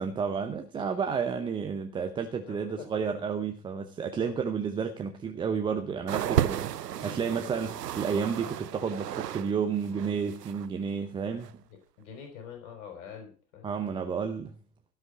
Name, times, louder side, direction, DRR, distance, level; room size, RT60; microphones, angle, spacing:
voice 1, 0.0-11.5 13.6-14.5, right 6 dB, 10° right, 0.7 m, -31 dB
voice 2, 2.5-3.0 4.1-4.4 6.9-7.3 11.7-13.7, left 7 dB, 45° left, 5.1 m, -46 dB
sound 1, 6.1-9.5 9.8-10.7 11.4-11.5, right 11 dB, 70° right, 0.6 m, -33 dB
17.0 x 5.8 x 8.1 m
figure-of-eight pair, 105°, 49 cm